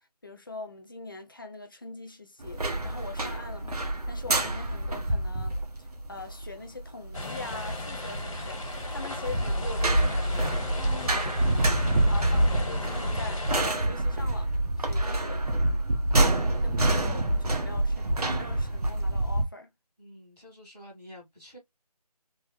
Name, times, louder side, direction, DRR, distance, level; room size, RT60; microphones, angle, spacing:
voice 1, 0.2-3.8 4.1-5.6 6.1-11.8 12.1-13.4 13.8-14.5 14.8-15.4 16.6-19.7, left 3 dB, 35° left, 0.5 m, -42 dB
sound 1, 2.4-19.4, right 1 dB, 65° right, 0.9 m, -28 dB
sound 2, 7.1-13.6, equal, 50° left, 1.4 m, -30 dB
voice 2, 20.0-21.6, equal, 5° right, 0.7 m, -49 dB
3.4 x 2.0 x 3.2 m
figure-of-eight pair, 170°, 21 cm